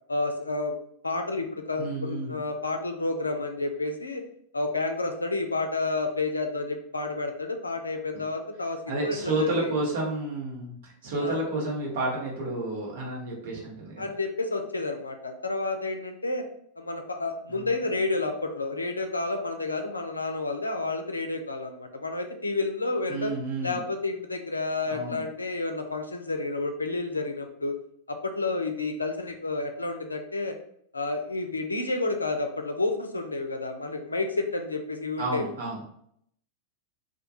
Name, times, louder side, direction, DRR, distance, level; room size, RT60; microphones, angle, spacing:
voice 1, 0.1-0.8 1.0-4.2 4.5-9.7 11.2-11.4 14.0-16.4 16.8-23.3 23.6-27.7 28.1-30.5 30.9-35.5, left 3 dB, 80° left, 5 dB, 0.3 m, -30 dB
voice 2, 1.8-2.3 8.9-14.0 17.5-17.6 23.1-23.8 24.9-25.2 35.2-35.8, right 2 dB, 55° right, -3 dB, 0.9 m, -30 dB
2.2 x 2.1 x 2.9 m, 0.68 s
figure-of-eight pair, 90°, 0 cm